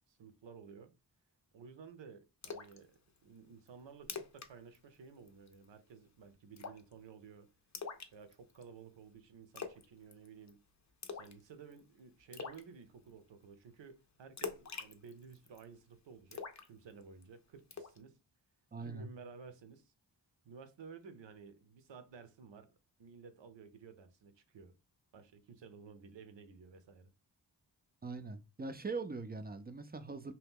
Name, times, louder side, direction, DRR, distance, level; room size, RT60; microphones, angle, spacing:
voice 1, 0.1-0.9 1.5-7.5 8.1-10.6 11.1-18.2 18.8-19.9 20.4-22.7 23.0-24.7 25.1-27.1, right 5 dB, 85° right, 0.7 m, -54 dB
Splash splatter, 2.4-2.8 3.2-3.3 3.7-3.8 4.0-4.5 4.7-5.0 5.3-5.6 6.6-6.9 7.7-8.6 9.6-9.9 10.1-10.5 11.0-11.4 11.7-11.8 12.3-12.6 14.4-15.6 16.3-17.2 17.7-18.0, left 5 dB, 40° left, 0.5 m, -44 dB
voice 2, 18.7-19.1 28.0-30.3, right 3 dB, 25° right, 0.4 m, -42 dB
2.8 x 2.2 x 3.5 m
cardioid pair, 60°, 43 cm